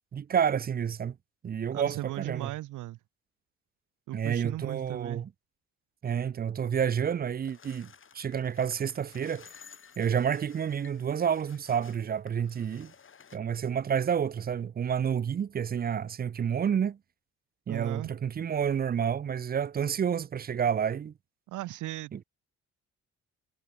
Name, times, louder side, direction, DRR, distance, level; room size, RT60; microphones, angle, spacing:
voice 1, 0.1-1.2 1.4-2.5 4.1-5.3 6.0-9.5 10.0-12.9 13.3-17.0 17.7-21.1 22.1-22.2, right 8 dB, 30° right, 0.5 m, -29 dB
voice 2, 1.7-3.0 4.1-5.2 17.7-18.1 21.5-22.2, right 16 dB, 85° right, 1.1 m, -37 dB
sound 1, 7.4-13.4, left 6 dB, 40° left, 3.3 m, -54 dB
cardioid pair, 90°, 30 cm